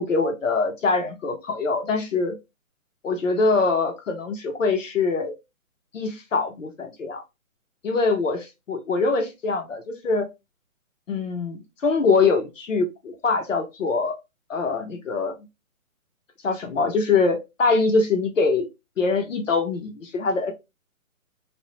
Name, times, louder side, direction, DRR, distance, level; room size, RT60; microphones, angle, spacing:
voice 1, 0.0-2.3 3.0-5.3 5.9-7.2 7.8-10.3 11.1-14.2 14.5-15.3 16.4-18.7 19.0-20.5, left 4 dB, 65° left, 0.9 m, -23 dB
2.4 x 2.1 x 2.8 m
hypercardioid pair, 175°, 41 cm